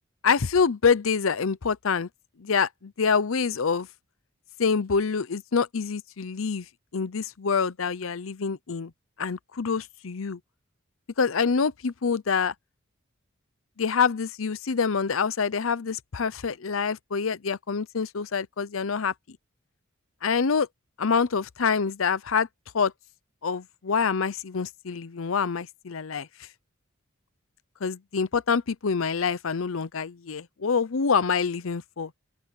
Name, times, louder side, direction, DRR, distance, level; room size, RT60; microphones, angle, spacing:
voice 1, 0.2-2.1 2.4-3.9 4.6-6.7 6.9-8.9 9.2-10.4 11.2-12.5 13.8-19.1 20.2-20.7 21.0-22.5 22.7-22.9 23.4-26.3 27.8-32.1, left 5 dB, 85° left, 0.7 m, -26 dB
open air
head